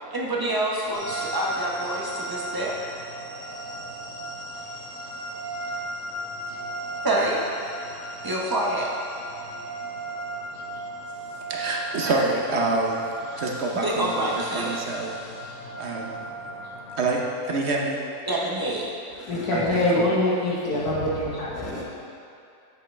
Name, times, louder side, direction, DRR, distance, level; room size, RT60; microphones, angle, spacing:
voice 1, 0.1-2.7 7.0-7.4 8.2-8.9 13.7-14.8 18.3-18.9, right 1 dB, 15° right, -4 dB, 0.8 m, -27 dB
sound 1, 0.9-17.2, right 1 dB, 50° left, 2.3 m, -36 dB
voice 2, 11.5-13.0 13.4-14.3 14.5-15.1 15.8-16.1 17.0-17.2 17.5-18.0 19.5-20.1 21.7-21.8, right 2 dB, 50° right, -1 dB, 1.0 m, -26 dB
voice 3, 19.2-21.8, left 1 dB, 70° left, -5 dB, 1.7 m, -24 dB
8.3 x 7.9 x 3.3 m, 2.6 s
omnidirectional pair, 1.7 m